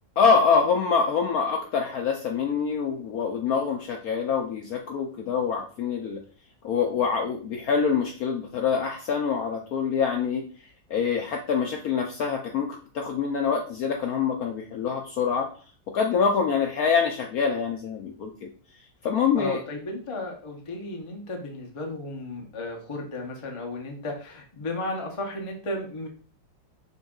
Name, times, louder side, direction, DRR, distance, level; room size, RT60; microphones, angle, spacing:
voice 1, 0.2-6.2 6.6-10.4 10.9-12.7 12.9-15.5 15.9-18.5 19.0-19.6, left 6 dB, 70° left, 2 dB, 0.9 m, -25 dB
voice 2, 19.4-26.1, left 2 dB, 40° left, 0 dB, 0.4 m, -34 dB
5.4 x 3.7 x 2.4 m, 0.41 s
omnidirectional pair, 2.0 m